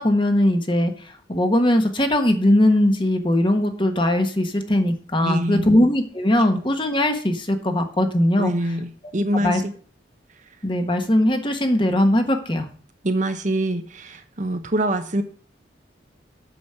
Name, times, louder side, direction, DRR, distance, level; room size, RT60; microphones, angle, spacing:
voice 1, 0.0-8.5 9.3-9.6 10.6-12.7, left 1 dB, 25° left, 6 dB, 1.3 m, -20 dB
voice 2, 5.2-5.7 8.4-9.7 13.0-15.2, right 1 dB, 40° right, 8 dB, 1.0 m, -24 dB
8.6 x 6.3 x 6.8 m, 0.43 s
head